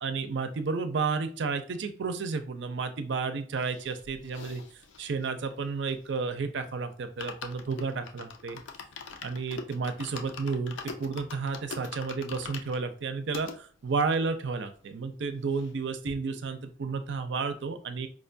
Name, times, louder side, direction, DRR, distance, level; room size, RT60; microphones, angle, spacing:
voice 1, 0.0-4.6 5.0-8.6 9.2-18.1, right 4 dB, 60° right, 9 dB, 0.4 m, -32 dB
sound 1, 3.6-6.4 6.7-6.8 7.0-13.6 14.1-14.2 14.4-14.5 14.8-15.8 16.1-16.2, left 5 dB, 65° left, 0.5 m, -44 dB
4.8 x 2.2 x 2.5 m, 0.41 s
head